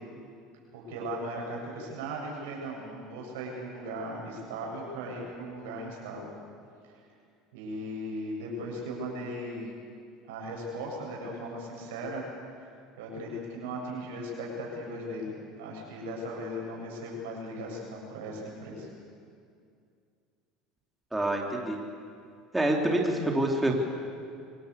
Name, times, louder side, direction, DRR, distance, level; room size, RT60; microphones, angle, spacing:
voice 1, 0.7-6.3 7.5-9.7 10.3-12.2 13.0-15.2 15.6-18.9, right 1 dB, 85° right, -1 dB, 7.8 m, -37 dB
voice 2, 21.1-21.8 22.5-23.7, right 1 dB, 10° right, 0 dB, 3.3 m, -26 dB
25.0 x 18.0 x 8.4 m, 2.3 s
supercardioid pair, 100°, 0 cm